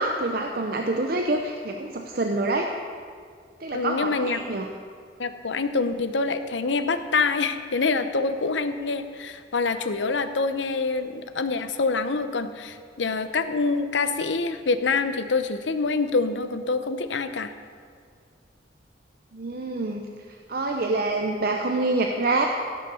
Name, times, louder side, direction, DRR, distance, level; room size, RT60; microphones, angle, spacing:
voice 1, 0.0-2.7 3.6-4.7 19.3-20.0 20.5-22.5, right 2 dB, 55° right, 3 dB, 0.7 m, -26 dB
voice 2, 3.7-4.4 5.2-17.5, left 4 dB, 85° left, 10 dB, 0.8 m, -26 dB
16.5 x 6.6 x 7.0 m, 2.1 s
head